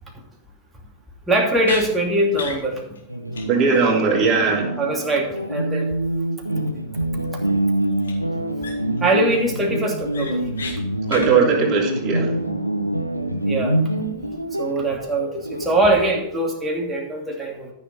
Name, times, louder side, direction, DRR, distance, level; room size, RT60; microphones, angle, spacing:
voice 1, 1.3-2.8 4.8-5.9 7.3-7.5 9.0-10.4 13.4-13.8 14.6-17.7, right 1 dB, 10° right, -2 dB, 2.8 m, -22 dB
sound 1, 1.6-1.9 2.3-2.6 3.0-3.1 3.3-3.5 3.7-3.9 8.0-8.1 8.6-9.0 9.4-9.5 9.8-10.7 11.1-11.3, left 4 dB, 70° left, 2.3 m, -32 dB
sound 2, 3.1-16.4, right 1 dB, 90° right, 0.8 m, -26 dB
voice 2, 3.5-4.8 11.1-12.4, right 5 dB, 30° right, -2 dB, 3.3 m, -19 dB
14.0 x 6.7 x 4.3 m, 0.79 s
figure-of-eight pair, 90°, 0 cm